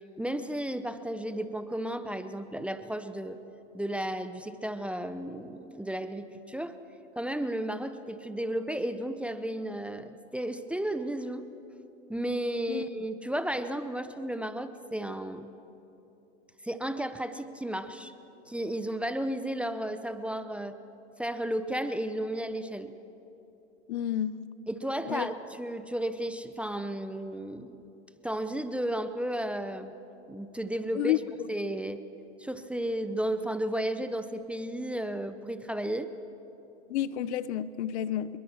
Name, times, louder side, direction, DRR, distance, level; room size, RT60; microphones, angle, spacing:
voice 1, 0.0-3.4 3.7-6.8 7.2-11.5 12.1-15.5 16.6-18.1 18.5-20.8 21.2-22.9 24.7-27.8 28.2-30.0 30.3-31.2 31.5-32.0 32.4-36.1, right 1 dB, 5° right, 10 dB, 0.7 m, -33 dB
voice 2, 23.9-24.4 25.0-25.3 30.9-31.2 36.9-38.4, left 12 dB, 65° left, 17 dB, 0.9 m, -30 dB
25.5 x 22.0 x 6.3 m, 3.0 s
hypercardioid pair, 110°, 36 cm